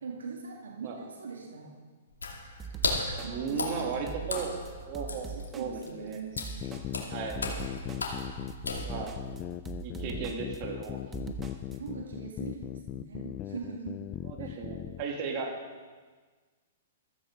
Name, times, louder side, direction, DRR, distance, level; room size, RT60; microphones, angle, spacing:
voice 1, 0.0-1.8 3.2-4.1 4.9-5.1 5.3-7.3 11.2-14.0 14.4-14.7, right 5 dB, 75° right, -1 dB, 2.1 m, -42 dB
Water / Splash splatter, 2.1-9.3, left 3 dB, 85° left, 2.6 m, -36 dB
sound 1, 2.6-11.8, right 6 dB, 15° right, 1.4 m, -42 dB
voice 2, 3.3-4.5 4.9-6.2 7.1-7.4 8.8-9.1 9.8-11.0 14.2-15.5, right 5 dB, 40° right, 0 dB, 2.9 m, -36 dB
sound 2, 6.4-15.0, left 13 dB, 30° left, 0.5 m, -39 dB
14.5 x 14.5 x 3.9 m, 1.4 s
hypercardioid pair, 115°, 0 cm